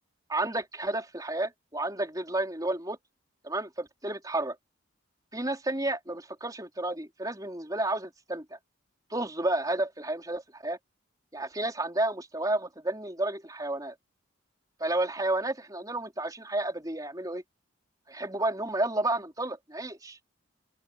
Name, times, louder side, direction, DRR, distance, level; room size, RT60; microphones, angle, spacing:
voice 1, 0.3-3.0 3.4-4.6 5.3-8.6 9.1-10.8 11.3-13.9 14.8-17.4 18.1-20.2, right 2 dB, 20° right, 4.2 m, -31 dB
open air
head